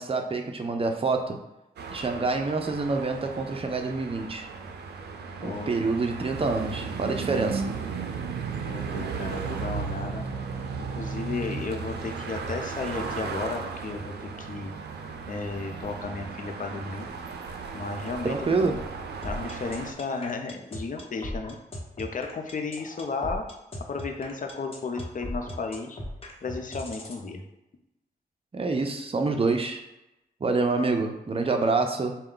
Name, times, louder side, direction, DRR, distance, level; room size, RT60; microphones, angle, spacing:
voice 1, 0.0-1.4 1.9-4.5 5.4-7.7 18.2-18.8 28.5-29.8 30.4-32.2, right 3 dB, 35° right, 4 dB, 0.6 m, -27 dB
sound 1, 1.8-19.9, right 5 dB, 85° right, 0.4 m, -35 dB
voice 2, 5.4-5.8 8.6-10.3 10.8-14.7 15.3-17.1 17.7-18.4 18.6-18.8 19.2-21.6 22.0-23.4 23.9-26.0 26.4-27.4, left 4 dB, 50° left, 4 dB, 0.6 m, -34 dB
sound 2, 19.2-27.2, left 1 dB, 35° left, 1.0 m, -37 dB
4.3 x 2.2 x 3.8 m, 0.92 s
cardioid pair, 60°, 17 cm